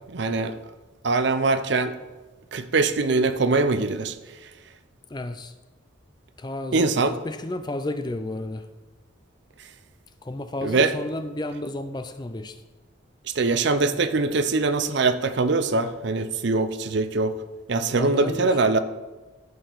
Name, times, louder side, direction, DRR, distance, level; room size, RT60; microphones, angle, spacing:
voice 1, 0.1-0.6 1.0-1.9 2.5-4.1 6.7-7.1 10.6-10.9 13.3-17.3 17.7-18.8, right 3 dB, 60° right, 10 dB, 0.6 m, -22 dB
voice 2, 5.1-5.5 6.4-8.7 10.2-12.6 17.9-18.6, left 1 dB, 20° left, 9 dB, 0.5 m, -32 dB
14.0 x 6.6 x 4.0 m, 1.2 s
head